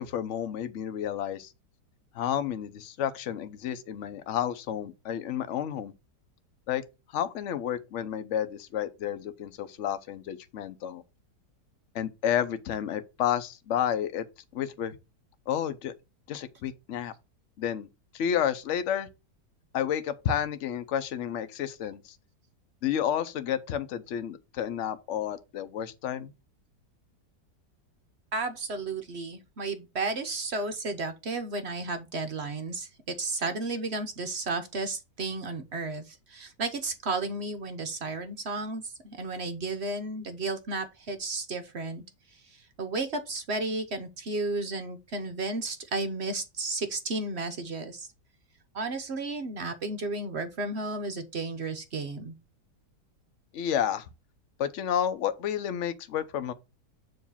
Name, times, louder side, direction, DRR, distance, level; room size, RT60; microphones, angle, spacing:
voice 1, 0.0-1.5 2.1-5.9 6.7-6.8 7.1-11.0 11.9-14.2 14.5-15.0 15.5-15.9 16.3-17.1 17.6-17.9 18.1-19.1 19.7-22.2 22.8-26.3 53.5-54.1 54.6-56.5, left 9 dB, 60° left, 0.9 m, -31 dB
voice 2, 28.3-42.0 42.3-48.1 48.7-52.4, right 3 dB, 55° right, 0.8 m, -33 dB
7.0 x 3.2 x 5.5 m
omnidirectional pair, 1.8 m